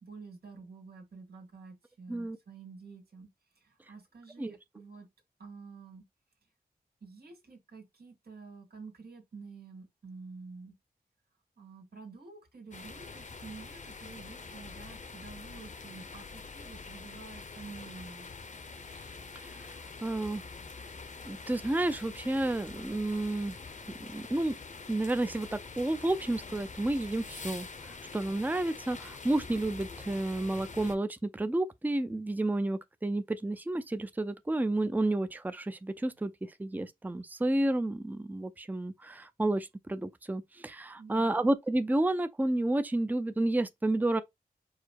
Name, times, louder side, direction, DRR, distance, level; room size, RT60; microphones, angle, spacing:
voice 1, 0.0-3.3 3.6-5.1 5.4-6.0 7.0-10.7 11.6-18.3 41.0-41.5, right 4 dB, 80° right, 1.9 m, -49 dB
sound 1, 12.7-30.9, left 4 dB, 50° left, 0.7 m, -45 dB
voice 2, 20.0-20.4 21.3-23.6 24.0-24.6 24.9-44.2, right 2 dB, 10° right, 0.5 m, -31 dB
4.8 x 2.1 x 4.7 m
wide cardioid pair, 75°, 16 cm